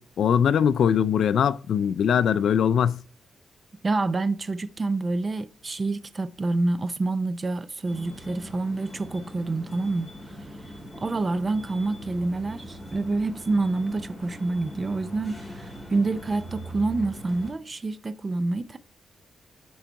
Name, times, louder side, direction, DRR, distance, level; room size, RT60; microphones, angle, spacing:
voice 1, 0.0-3.0, left 8 dB, 65° left, 0.4 m, -21 dB
voice 2, 3.8-10.3 11.0-18.8, right 3 dB, 25° right, 0.5 m, -27 dB
sound 1, 7.9-17.5, equal, 5° left, 2.9 m, -41 dB
10.5 x 4.7 x 4.0 m
wide cardioid pair, 160°, 0 cm